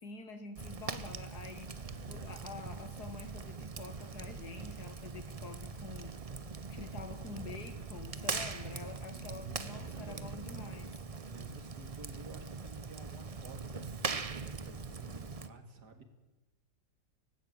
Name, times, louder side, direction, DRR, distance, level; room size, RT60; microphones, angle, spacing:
voice 1, 0.0-6.2 6.7-10.9, left 4 dB, 65° left, 9 dB, 2.3 m, -47 dB
Fire, 0.6-15.5, right 4 dB, 40° right, 0.5 m, -42 dB
voice 2, 1.7-2.4 8.9-10.3 11.3-16.0, right 3 dB, 65° right, 7 dB, 2.8 m, -52 dB
18.5 x 16.0 x 9.0 m, 1.1 s
omnidirectional pair, 1.9 m